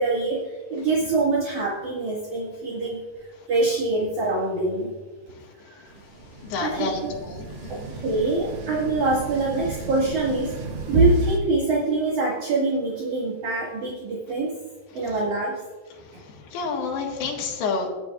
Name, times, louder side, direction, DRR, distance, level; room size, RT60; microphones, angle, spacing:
voice 1, 0.0-3.0 3.5-4.9 5.8-5.9 6.6-7.1 7.7-10.5 10.9-14.5 14.9-15.6, right 3 dB, 55° right, -5 dB, 3.2 m, -24 dB
sound 1, 5.9-11.4, right 3 dB, 75° right, 1.2 m, -37 dB
voice 2, 6.4-7.9 16.5-17.9, left 4 dB, 90° left, 0 dB, 3.7 m, -29 dB
24.5 x 8.9 x 2.5 m, 1.4 s
omnidirectional pair, 4.6 m